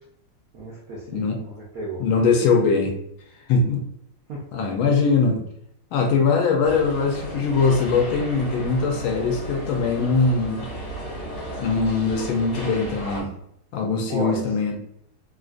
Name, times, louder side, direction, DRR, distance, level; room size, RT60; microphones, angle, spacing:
voice 1, 0.5-2.3 4.3-4.7 14.1-14.4, right 2 dB, 65° right, -6 dB, 0.9 m, -34 dB
voice 2, 2.0-3.0 3.5-3.8 4.5-5.4 5.9-10.7 11.6-13.3 13.7-14.8, left 4 dB, 80° left, 2 dB, 1.4 m, -21 dB
sound 1, 6.6-13.2, right 1 dB, 50° left, 1.6 m, -34 dB
3.7 x 2.5 x 2.4 m, 0.73 s
omnidirectional pair, 2.3 m